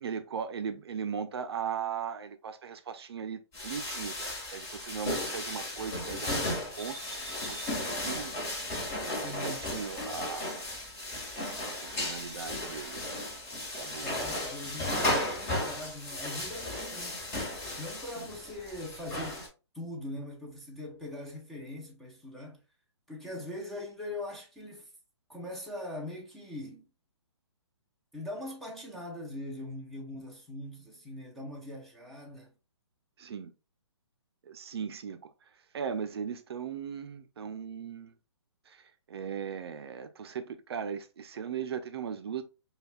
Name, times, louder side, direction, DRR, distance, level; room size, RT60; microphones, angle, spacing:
voice 1, 0.0-7.0 7.3-8.3 9.0-10.6 11.5-13.1 13.7-14.1 18.2-18.3 33.2-33.5 34.5-35.3 35.7-38.1 38.7-42.4, right 7 dB, 60° right, 0.5 m, -38 dB
Cooking in the Kitchen, 3.5-19.5, left 1 dB, 25° left, 1.4 m, -35 dB
voice 2, 9.2-9.6 14.0-17.2 17.8-19.5 19.7-22.6 23.1-24.9 25.3-26.9 28.1-32.5, left 1 dB, ahead, 0.6 m, -41 dB
5.3 x 2.3 x 2.3 m
hypercardioid pair, 145°, 15 cm